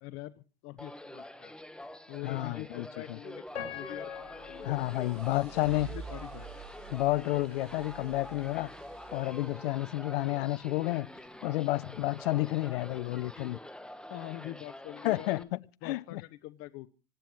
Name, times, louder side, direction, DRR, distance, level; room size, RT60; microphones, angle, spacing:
voice 1, 0.0-1.5 2.1-4.9 5.3-6.5 14.1-15.5 15.8-16.9, left 16 dB, 45° left, 1.0 m, -44 dB
sound 1, 0.8-15.4, left 1 dB, 5° left, 1.3 m, -46 dB
voice 2, 2.2-3.2 4.6-5.9 6.9-8.7 9.1-11.1 11.4-13.6 15.0-16.2, left 18 dB, 65° left, 0.7 m, -31 dB
Piano, 3.5-6.5 7.1-7.2 7.9-8.1, left 8 dB, 85° left, 5.6 m, -44 dB
sound 2, 4.0-10.1, right 7 dB, 40° right, 2.3 m, -49 dB
26.0 x 9.3 x 4.5 m
hypercardioid pair, 105°, 31 cm